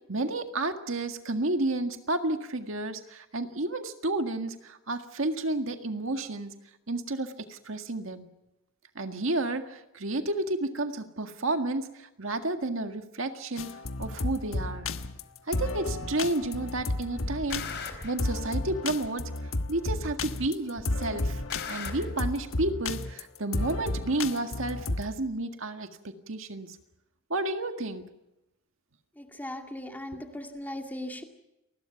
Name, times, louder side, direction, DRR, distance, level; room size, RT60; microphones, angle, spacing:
voice 1, 0.1-6.5 6.9-8.3 8.9-13.7 14.0-14.9 15.5-19.2 19.7-21.4 21.7-26.8 27.3-28.1, right 2 dB, 70° right, 6 dB, 1.8 m, -31 dB
sound 1, 13.6-25.1, left 2 dB, 75° left, 1.3 m, -32 dB
sound 2, 14.0-14.1 15.0-15.1 16.0-16.5 16.8-18.2 19.0-19.1 20.0-20.5 20.8-22.0, left 4 dB, 55° left, 3.9 m, -40 dB
voice 2, 29.2-31.2, left 1 dB, 10° left, 3 dB, 2.3 m, -38 dB
29.0 x 20.5 x 5.9 m, 0.90 s
head